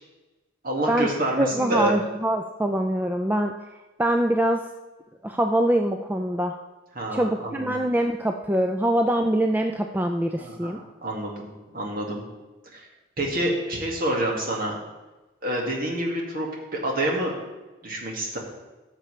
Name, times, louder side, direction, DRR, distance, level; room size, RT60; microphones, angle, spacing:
voice 1, 0.6-1.9 7.0-7.7 10.4-11.5 11.7-12.2 12.7-12.9 13.2-14.8 15.4-16.5 16.7-17.3 17.8-18.4, right 1 dB, 45° right, -1 dB, 1.9 m, -27 dB
voice 2, 1.4-3.5 4.0-4.6 5.2-6.5 7.1-10.8, right 1 dB, 10° right, 4 dB, 0.3 m, -24 dB
14.5 x 6.7 x 3.2 m, 1.1 s
head